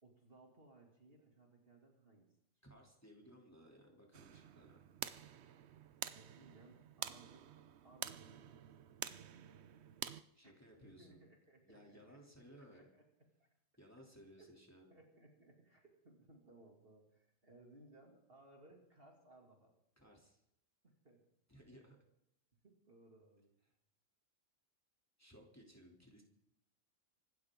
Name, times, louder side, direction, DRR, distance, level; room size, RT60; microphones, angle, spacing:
voice 1, 0.0-2.3 6.1-7.5 7.8-8.7 10.4-12.2 12.5-13.0 13.4-13.5 14.4-14.6 14.9-19.8 20.8-21.2 22.6-23.5, right 2 dB, 45° right, 0 dB, 2.8 m, -63 dB
voice 2, 2.6-4.9 10.3-11.2 11.6-12.9 13.8-14.9 20.0-20.4 21.5-22.0 25.2-26.2, equal, 10° left, -1 dB, 3.0 m, -60 dB
sound 1, 4.1-10.2, right 9 dB, 60° right, 0.9 m, -48 dB
25.0 x 12.5 x 3.8 m, 0.81 s
omnidirectional pair, 1.4 m